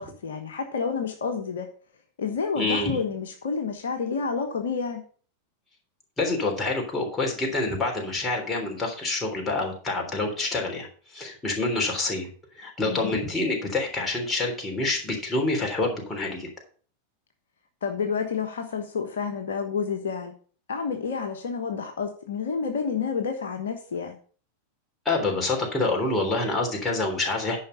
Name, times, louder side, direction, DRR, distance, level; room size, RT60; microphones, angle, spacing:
voice 1, 0.0-1.7 2.2-5.0 12.9-13.2 17.8-20.3 20.7-24.2, left 5 dB, 60° left, 5 dB, 1.2 m, -29 dB
voice 2, 2.5-3.0 6.2-12.3 12.6-16.5 25.0-27.6, left 2 dB, 15° left, 0 dB, 3.4 m, -27 dB
10.0 x 5.8 x 5.7 m, 0.43 s
figure-of-eight pair, 90°, 0 cm